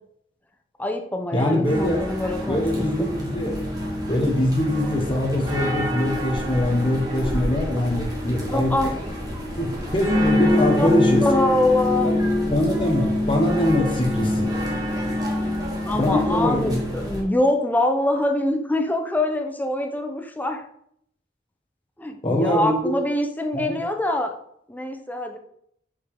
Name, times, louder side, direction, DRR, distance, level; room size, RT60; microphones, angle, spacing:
voice 1, 0.8-3.1 8.5-9.0 10.8-10.9 11.2-12.1 15.9-20.6 22.0-24.3 24.7-25.4, left 1 dB, 10° left, 5 dB, 0.7 m, -24 dB
voice 2, 1.3-2.0 2.5-3.5 4.1-9.0 9.6-11.2 12.0-12.2 12.5-14.5 15.9-16.8 22.2-22.9 23.5-23.8, left 1 dB, 30° left, 1 dB, 1.5 m, -23 dB
sound 1, 1.6-17.2, left 1 dB, 20° right, 1.7 m, -26 dB
6.9 x 5.4 x 3.6 m, 0.70 s
head